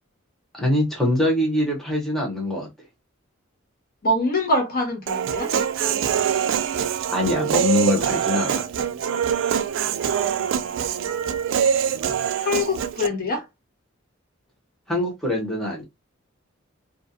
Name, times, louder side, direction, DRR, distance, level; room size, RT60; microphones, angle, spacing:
voice 1, 0.5-2.7 7.1-8.7 14.9-15.8, left 1 dB, ahead, 0.8 m, -23 dB
voice 2, 4.0-5.5 12.4-13.4, left 2 dB, 45° left, 0.8 m, -24 dB
Human voice, 5.1-13.1, right 8 dB, 65° right, 0.3 m, -24 dB
2.4 x 2.2 x 2.6 m
head